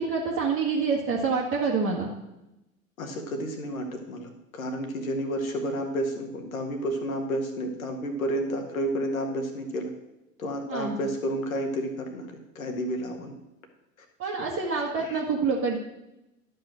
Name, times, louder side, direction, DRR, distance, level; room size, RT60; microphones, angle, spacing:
voice 1, 0.0-2.1 10.7-11.0 14.2-15.8, right 5 dB, 30° right, -2 dB, 1.5 m, -27 dB
voice 2, 3.0-9.9 10.4-13.3 15.0-15.2, equal, 70° left, 4 dB, 1.9 m, -31 dB
11.5 x 5.4 x 6.2 m, 0.94 s
figure-of-eight pair, 85°, 42 cm